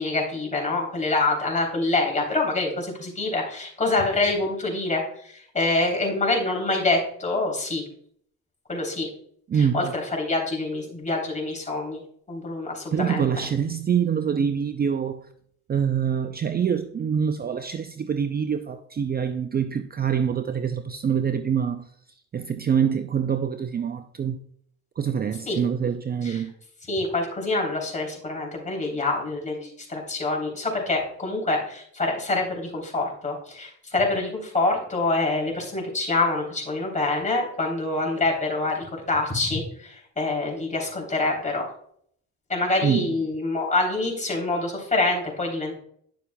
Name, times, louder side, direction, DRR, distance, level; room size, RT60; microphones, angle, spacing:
voice 1, 0.0-7.8 8.7-9.1 9.5-12.0 12.3-13.3 25.5-25.6 26.2-26.4 26.9-41.7 42.5-45.8, left 2 dB, 25° left, 3.3 m, -26 dB
voice 2, 9.5-9.9 12.9-15.3 15.7-21.9 22.3-24.4 25.0-26.5 42.8-43.1, right 7 dB, 30° right, 0.5 m, -25 dB
10.5 x 6.9 x 2.2 m
cardioid pair, 90°, 30 cm